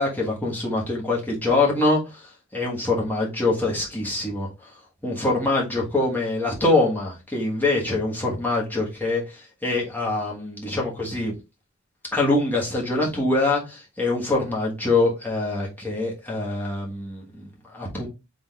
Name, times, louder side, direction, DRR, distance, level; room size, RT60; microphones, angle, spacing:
voice 1, 0.0-4.5 5.0-11.3 12.1-18.1, left 2 dB, 10° left, 1.2 m, -24 dB
3.8 x 3.5 x 3.3 m
head